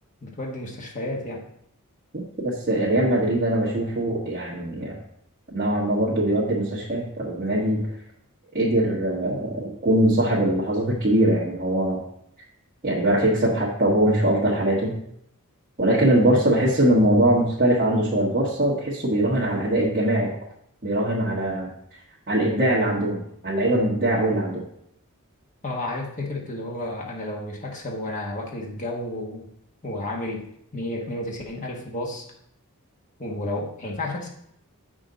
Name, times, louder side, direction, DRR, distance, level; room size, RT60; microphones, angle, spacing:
voice 1, 0.2-1.4 25.6-29.5 29.8-30.4 30.7-32.2 33.2-34.3, left 1 dB, 35° left, -1 dB, 1.2 m, -31 dB
voice 2, 2.4-5.0 5.5-7.9 8.5-12.0 12.8-15.0 15.8-20.3 20.8-21.7 22.3-24.6, right 1 dB, 40° right, -8 dB, 1.5 m, -22 dB
8.0 x 6.3 x 3.9 m, 0.72 s
head